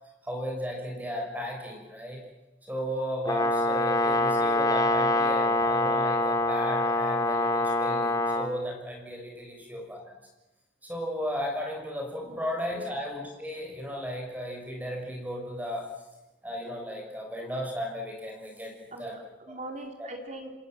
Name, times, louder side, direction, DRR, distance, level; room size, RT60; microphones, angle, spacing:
voice 1, 0.2-2.2 2.7-10.0 10.8-15.9 16.4-19.1 20.0-20.1, equal, 10° right, 0 dB, 5.8 m, -35 dB
Brass instrument, 3.2-8.5, left 2 dB, 20° left, 2.5 m, -25 dB
voice 2, 5.2-5.6 12.2-12.9 18.9-20.5, right 1 dB, 40° right, 3 dB, 4.3 m, -42 dB
29.0 x 26.5 x 7.7 m, 1.1 s
head